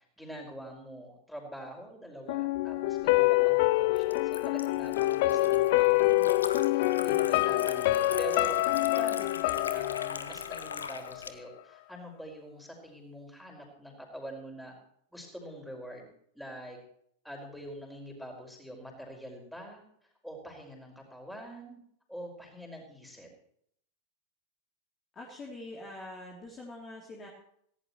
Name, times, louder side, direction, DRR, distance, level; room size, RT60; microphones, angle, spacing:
voice 1, 0.2-14.7 15.1-16.1 16.4-16.8 17.2-19.8 20.2-21.8 22.1-23.3, right 1 dB, ahead, 1 dB, 5.3 m, -44 dB
sound 1, 2.3-11.3 11.6-11.7, left 19 dB, 50° left, 0.5 m, -26 dB
Liquid, 2.9-11.3, left 5 dB, 75° left, 1.2 m, -42 dB
voice 2, 25.1-27.3, left 2 dB, 25° left, -1 dB, 3.1 m, -44 dB
18.5 x 16.5 x 3.1 m, 0.68 s
figure-of-eight pair, 90°, 0 cm